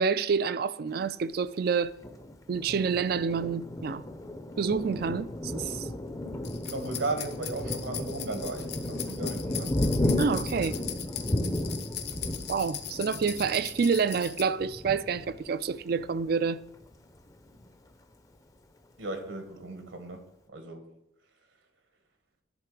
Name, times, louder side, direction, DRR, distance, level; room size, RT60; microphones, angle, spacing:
voice 1, 0.0-1.9 2.5-4.0 4.6-5.9 10.2-10.7 12.5-16.6, right 5 dB, 50° right, 0.3 m, -28 dB
Thunder, 2.0-16.3 16.8-17.0 17.3-17.9, left 1 dB, 15° left, 0.5 m, -34 dB
voice 2, 6.2-9.8 10.6-10.7 19.0-20.9, right 2 dB, 80° right, 1.4 m, -36 dB
sound 1, 6.4-14.4, left 10 dB, 55° left, 0.7 m, -39 dB
11.0 x 3.8 x 4.8 m
head